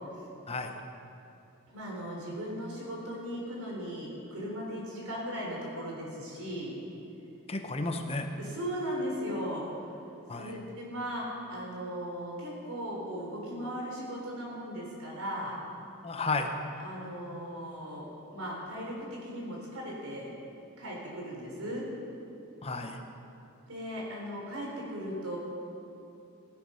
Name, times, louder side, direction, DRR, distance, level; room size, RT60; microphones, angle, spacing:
voice 1, 1.7-6.8 8.4-9.9 10.3-15.6 16.8-18.1 18.3-20.3 20.8-21.9 23.7-25.4, equal, 75° right, -3 dB, 3.8 m, -37 dB
voice 2, 7.5-8.3 10.3-10.5 16.0-16.5 22.6-23.0, left 3 dB, 25° left, 5 dB, 0.9 m, -32 dB
16.0 x 9.3 x 5.6 m, 2.9 s
head